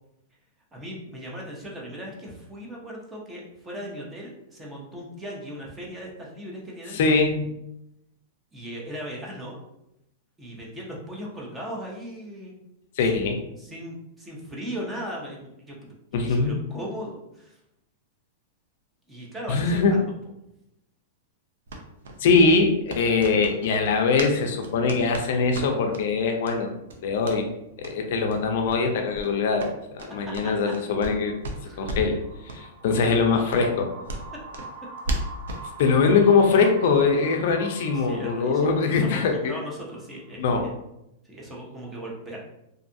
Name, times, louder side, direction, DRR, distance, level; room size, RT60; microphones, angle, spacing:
voice 1, 0.7-7.0 8.5-9.6 10.4-12.5 13.1-17.6 19.1-20.1 30.2-30.3 31.7-31.9 37.9-40.7 41.2-42.5, equal, 10° right, -3 dB, 0.5 m, -38 dB
voice 2, 6.9-7.5 13.0-13.4 16.1-16.6 19.5-19.9 22.2-26.7 27.0-27.5 27.8-31.3 31.8-32.2 32.4-33.9 35.8-39.6 40.4-40.7, left 4 dB, 55° left, 4 dB, 0.4 m, -22 dB
sound 1, 21.7-24.4 24.6-26.0 26.4-26.6 26.8-27.4 27.8-27.9 28.3-28.4 28.6-28.8 29.1-31.2 31.4-32.2 32.5-32.6 32.9-33.0 33.5-35.7, right 1 dB, 90° right, 0.5 m, -35 dB
sound 2, 30.8-40.3, right 3 dB, 70° right, 0.8 m, -44 dB
2.5 x 2.3 x 2.5 m, 0.83 s
supercardioid pair, 160°, 0 cm